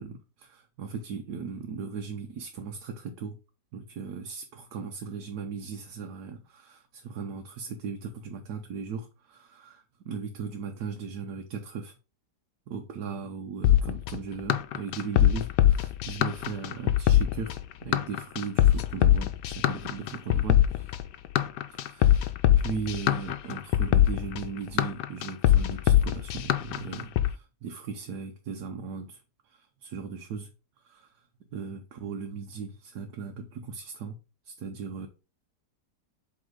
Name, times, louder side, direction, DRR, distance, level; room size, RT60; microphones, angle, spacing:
voice 1, 0.0-3.4 3.7-11.9 12.7-21.0 21.7-30.5 30.8-34.2 34.4-35.1, right 5 dB, 75° right, 1.3 m, -38 dB
sound 1, 13.6-27.3, left 12 dB, 80° left, 1.2 m, -22 dB
7.7 x 3.5 x 3.8 m
omnidirectional pair, 1.8 m